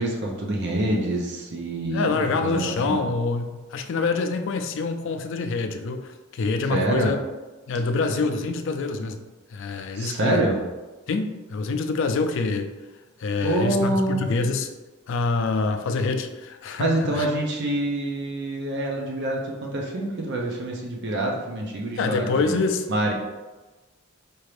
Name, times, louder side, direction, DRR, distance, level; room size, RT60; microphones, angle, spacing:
voice 1, 0.0-3.0 6.7-7.1 9.9-10.6 13.4-14.2 16.8-22.6 22.9-23.1, right 1 dB, 55° right, 0 dB, 0.6 m, -26 dB
voice 2, 1.9-7.2 7.7-9.2 9.5-10.5 11.1-12.7 13.2-14.7 15.1-17.2 22.0-22.9, left 3 dB, 60° left, 7 dB, 0.4 m, -26 dB
4.4 x 2.5 x 3.2 m, 1.2 s
head